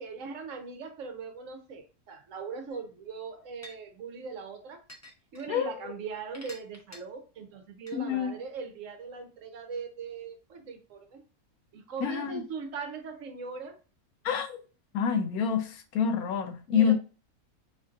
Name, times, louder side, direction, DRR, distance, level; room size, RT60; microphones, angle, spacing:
voice 1, 0.0-4.8 5.3-11.2 11.7-13.8 16.7-16.9, right 5 dB, 65° right, 1.0 m, -40 dB
sound 1, 2.7-2.8 3.6-3.7 4.9-5.4 6.3-7.0 7.9-8.0, left 1 dB, 25° left, 0.3 m, -47 dB
voice 2, 7.9-8.4 12.0-12.4 14.2-14.6 14.9-16.9, left 7 dB, 85° left, 1.1 m, -27 dB
4.3 x 2.6 x 2.4 m
omnidirectional pair, 1.5 m